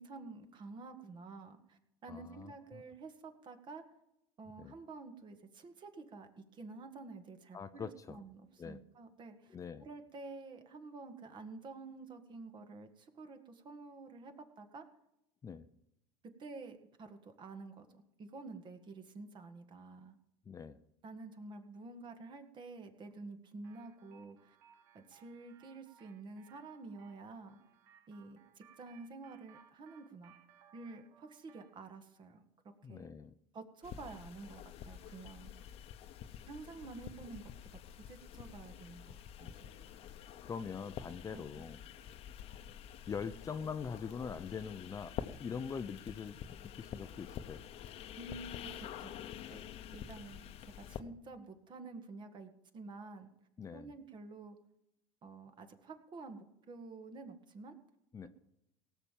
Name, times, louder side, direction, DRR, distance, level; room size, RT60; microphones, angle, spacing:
voice 1, 0.0-3.8 4.4-14.9 16.2-20.2 21.0-24.6 24.9-27.6 28.1-30.3 30.7-33.1 33.5-35.7 36.5-37.5 38.0-39.7 41.3-41.6 48.2-49.1 49.5-49.6 49.9-53.3 53.7-54.6 55.2-57.8, right 3 dB, 40° right, 7 dB, 1.8 m, -50 dB
voice 2, 2.1-2.8 4.6-4.8 7.5-8.2 8.6-8.8 9.5-9.9 15.4-15.7 20.5-20.8 32.8-33.3 39.9-40.1 40.4-41.8 43.1-47.6 53.6-53.9 58.1-58.3, left 6 dB, 25° left, 11 dB, 0.6 m, -43 dB
sound 1, 23.6-31.8, right 9 dB, 75° right, 1.4 m, -64 dB
sound 2, 33.8-51.0, left 10 dB, 55° left, 1.0 m, -48 dB
17.5 x 6.9 x 7.4 m, 0.84 s
supercardioid pair, 105°, 12 cm